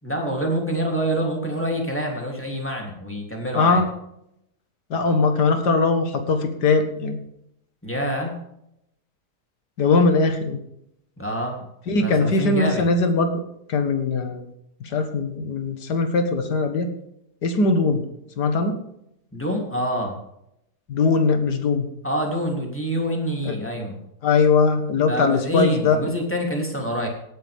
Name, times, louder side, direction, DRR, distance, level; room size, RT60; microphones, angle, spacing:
voice 1, 0.0-3.8 7.8-8.3 11.2-11.6 11.9-12.9 19.3-20.2 22.0-24.0 25.1-27.1, equal, 5° left, 0 dB, 3.2 m, -26 dB
voice 2, 4.9-7.2 9.8-10.6 11.9-13.4 13.7-14.4 14.8-16.9 17.4-18.0 18.4-18.7 20.9-21.9 23.5-23.6 24.2-26.1, left 4 dB, 80° left, 7 dB, 2.1 m, -20 dB
18.0 x 9.9 x 3.6 m, 0.78 s
omnidirectional pair, 1.7 m